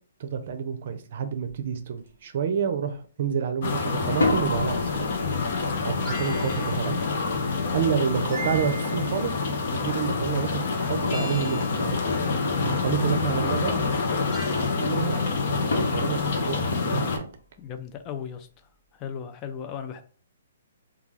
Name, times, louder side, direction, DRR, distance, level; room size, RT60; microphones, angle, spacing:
voice 1, 0.2-5.1 5.8-7.0 7.7-9.3 9.7-11.9 12.6-13.8 14.5-15.2 15.8-17.3, right 7 dB, 55° right, 0.5 m, -29 dB
sound 1, 1.4-1.6 2.0-2.5 4.0-8.8 10.5-10.6 11.0-11.9 15.7-17.4, left 2 dB, 85° left, 1.1 m, -33 dB
sound 2, 3.6-17.2, left 4 dB, 55° left, 0.7 m, -27 dB
sound 3, 6.1-7.0 8.3-9.2 11.1-12.0 14.3-14.9, equal, 5° left, 0.9 m, -38 dB
voice 2, 17.6-20.0, left 8 dB, 25° left, 0.4 m, -37 dB
2.3 x 2.3 x 3.2 m
hypercardioid pair, 145°, 0 cm